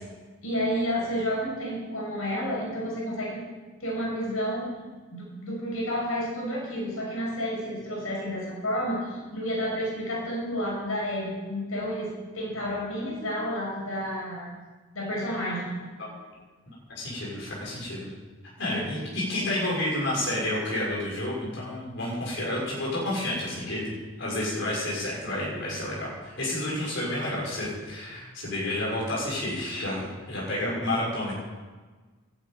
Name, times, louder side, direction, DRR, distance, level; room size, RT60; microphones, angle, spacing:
voice 1, 0.4-3.4 3.8-4.7 5.1-14.5 14.9-15.7 18.7-19.0, equal, 85° left, -3 dB, 6.7 m, -30 dB
voice 2, 16.9-18.1 18.6-23.9 24.2-31.3, left 1 dB, 55° left, -5 dB, 6.6 m, -30 dB
12.5 x 10.5 x 9.4 m, 1.4 s
head